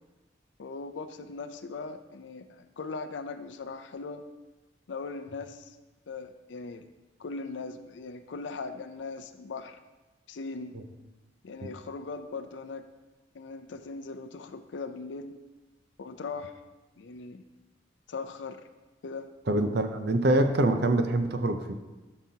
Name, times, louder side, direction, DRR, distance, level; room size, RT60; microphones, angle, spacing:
voice 1, 0.6-4.2 4.9-5.8 6.1-6.9 7.2-9.8 10.3-10.8 11.4-12.8 13.3-15.4 16.0-16.5 17.0-17.4 18.1-18.6 19.0-19.3, left 4 dB, 75° left, 9 dB, 0.5 m, -39 dB
voice 2, 19.5-21.7, right 1 dB, 60° right, 7 dB, 0.6 m, -25 dB
12.5 x 5.8 x 2.8 m, 1.1 s
head